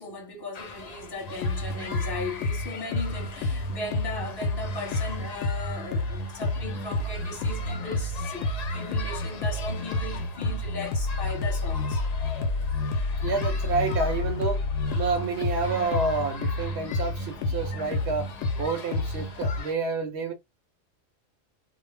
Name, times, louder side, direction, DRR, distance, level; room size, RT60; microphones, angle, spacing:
voice 1, 0.0-12.0, left 3 dB, 20° left, 0.9 m, -37 dB
sound 1, 0.5-19.7, left 5 dB, 65° left, 0.4 m, -42 dB
sound 2, 1.2-19.6, left 2 dB, 85° left, 0.9 m, -30 dB
voice 2, 13.2-14.6 15.0-18.3 18.6-20.3, right 4 dB, 65° right, 0.8 m, -29 dB
2.1 x 2.0 x 3.1 m
omnidirectional pair, 1.3 m